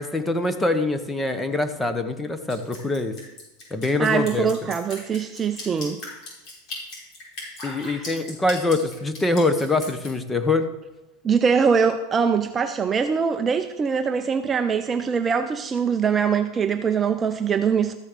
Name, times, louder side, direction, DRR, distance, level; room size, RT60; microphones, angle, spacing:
voice 1, 0.0-3.1 3.7-4.5 7.6-10.7, left 2 dB, 10° left, 9 dB, 1.0 m, -24 dB
Drip, 2.5-10.1, left 2 dB, 40° left, 5.2 m, -37 dB
voice 2, 4.0-6.0 11.2-17.9, right 6 dB, 20° right, 7 dB, 0.5 m, -22 dB
13.5 x 6.3 x 6.7 m, 1.1 s
supercardioid pair, 150°, 0 cm